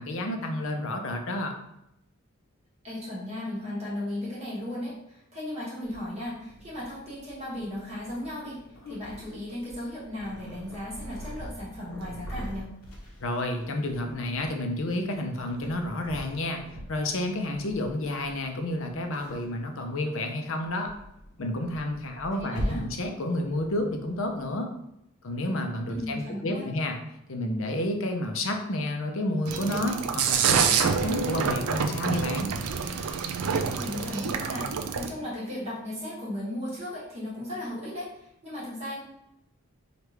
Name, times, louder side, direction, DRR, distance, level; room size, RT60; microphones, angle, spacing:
voice 1, 0.0-1.5 13.2-16.6 16.9-20.9 21.4-24.7 25.2-27.0 27.3-32.5, left 1 dB, 65° left, 4 dB, 0.6 m, -30 dB
voice 2, 2.8-8.6 8.9-12.7 22.1-22.9 25.9-26.7 33.7-34.6 34.9-39.0, left 1 dB, 30° right, -8 dB, 1.2 m, -36 dB
Purr, 5.9-24.5, equal, 90° left, 1.0 m, -43 dB
sound 1, 29.5-35.1, right 6 dB, 90° right, 0.4 m, -27 dB
4.7 x 2.5 x 3.2 m, 0.81 s
head